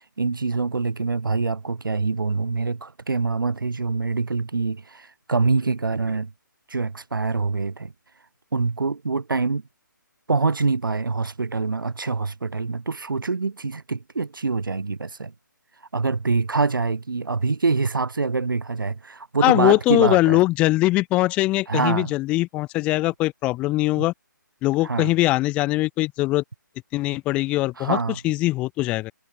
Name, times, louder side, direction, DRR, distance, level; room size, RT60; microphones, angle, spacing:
voice 1, 0.2-6.3 6.7-7.9 8.5-9.6 10.3-15.3 15.9-20.4 21.7-22.1 24.0-24.1 24.8-25.1 27.8-28.2, right 4 dB, 85° right, 1.3 m, -25 dB
voice 2, 19.4-24.1 24.6-26.4 26.9-28.0 28.2-29.1, left 18 dB, 10° left, 0.5 m, -21 dB
hypercardioid pair, 155°, 11 cm